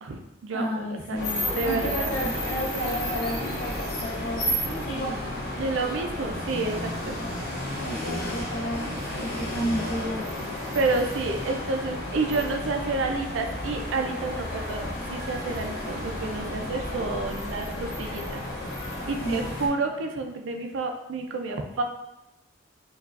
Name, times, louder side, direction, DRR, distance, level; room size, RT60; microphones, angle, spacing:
voice 1, 0.0-2.1 5.6-7.2 10.7-14.8 15.1-18.4 19.1-21.8, right 3 dB, 70° right, 4 dB, 0.4 m, -30 dB
voice 2, 0.5-5.2 7.8-10.2 19.2-19.4, equal, 70° left, -4 dB, 0.5 m, -32 dB
sound 1, 1.1-19.7, left 1 dB, 45° left, 1.0 m, -32 dB
4.5 x 2.4 x 2.4 m, 0.92 s
head